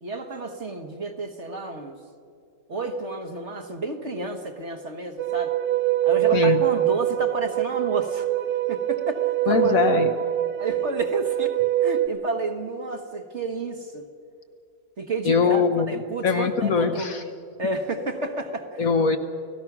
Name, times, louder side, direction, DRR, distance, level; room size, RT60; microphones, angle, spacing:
voice 1, 0.0-2.0 2.7-5.5 6.0-8.3 8.7-9.8 10.6-11.6 11.8-14.0 15.0-15.6 15.9-17.2 17.6-18.9, right 2 dB, 40° right, 5 dB, 1.4 m, -31 dB
sound 1, 5.2-12.1, right 14 dB, 65° right, 1.2 m, -24 dB
voice 2, 6.3-6.6 9.5-10.1 15.2-17.2 18.8-19.2, left 5 dB, 55° left, 7 dB, 1.4 m, -22 dB
30.0 x 18.0 x 6.0 m, 2.5 s
omnidirectional pair, 2.0 m